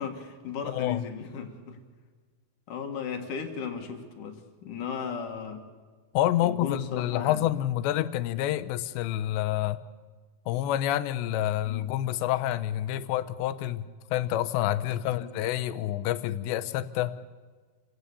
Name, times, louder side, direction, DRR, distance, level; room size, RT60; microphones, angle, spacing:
voice 1, 0.0-1.8 2.7-5.6 6.4-7.5 11.7-11.8 15.0-15.3, left 6 dB, 60° left, 5 dB, 2.7 m, -36 dB
voice 2, 0.6-1.0 6.1-9.8 10.5-17.2, left 13 dB, 90° left, 12 dB, 3.0 m, -28 dB
28.5 x 16.5 x 6.9 m, 1.5 s
omnidirectional pair, 4.9 m